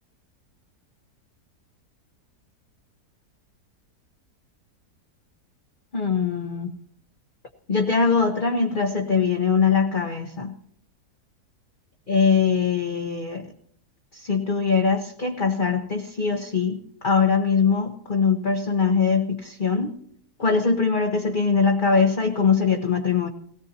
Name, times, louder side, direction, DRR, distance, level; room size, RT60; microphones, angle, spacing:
voice 1, 5.9-6.7 7.7-10.5 12.1-13.4 14.1-20.0 20.4-23.3, left 5 dB, 35° left, 3 dB, 1.0 m, -22 dB
17.5 x 17.5 x 2.9 m, 0.65 s
omnidirectional pair, 1.7 m